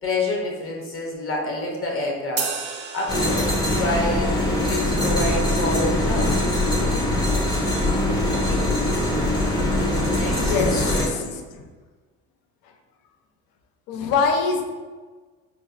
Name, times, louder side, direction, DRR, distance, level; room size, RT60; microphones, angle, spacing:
voice 1, 0.0-2.5 2.9-6.4 8.3-8.7 9.6-11.3, left 2 dB, 35° left, -1 dB, 1.0 m, -28 dB
sound 1, 2.4-4.0, right 6 dB, 30° right, 0.4 m, -32 dB
sound 2, 3.1-11.1, left 1 dB, 10° left, 0.7 m, -22 dB
voice 2, 10.4-10.7 13.9-14.7, left 5 dB, 65° left, 3 dB, 0.6 m, -22 dB
4.5 x 2.0 x 2.6 m, 1.4 s
supercardioid pair, 75°, 38 cm